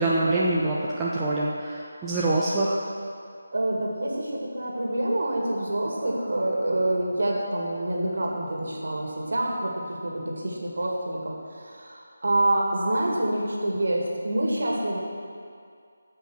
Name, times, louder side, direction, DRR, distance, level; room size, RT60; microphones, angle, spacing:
voice 1, 0.0-2.8, right 2 dB, 10° right, -7 dB, 0.8 m, -25 dB
voice 2, 3.5-15.0, right 1 dB, 55° right, -2 dB, 2.4 m, -27 dB
15.0 x 5.5 x 6.4 m, 2.3 s
figure-of-eight pair, 155°, 0 cm